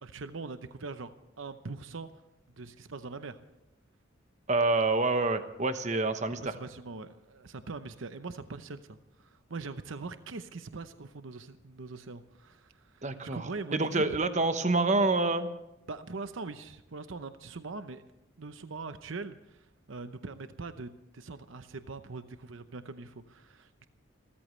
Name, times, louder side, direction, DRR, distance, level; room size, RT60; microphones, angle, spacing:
voice 1, 0.0-2.1 2.6-3.4 6.3-14.2 15.9-18.0 18.4-23.8, right 3 dB, 80° right, 10 dB, 0.8 m, -42 dB
voice 2, 4.5-6.5 13.0-13.4 13.7-15.5, right 3 dB, 35° right, 9 dB, 1.1 m, -27 dB
29.5 x 14.0 x 3.2 m, 0.93 s
head